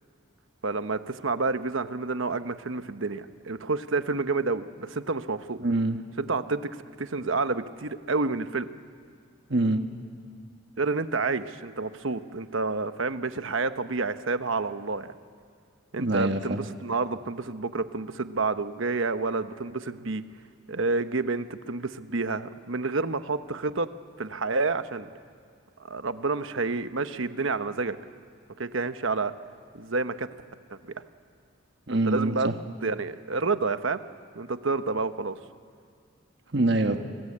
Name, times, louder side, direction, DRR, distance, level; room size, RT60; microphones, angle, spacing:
voice 1, 0.6-5.6 6.2-8.7 10.8-15.1 15.9-20.2 20.7-23.9 24.2-25.1 25.8-28.0 28.6-29.3 29.7-30.3 30.8-30.9 31.9-32.5 32.8-34.0 34.3-35.4, right 3 dB, 70° right, 10 dB, 1.0 m, -29 dB
voice 2, 5.6-6.0 9.5-9.8 16.0-16.7 31.9-32.5 36.5-37.0, right 2 dB, 55° right, 6 dB, 1.4 m, -25 dB
29.5 x 21.5 x 8.7 m, 2.2 s
head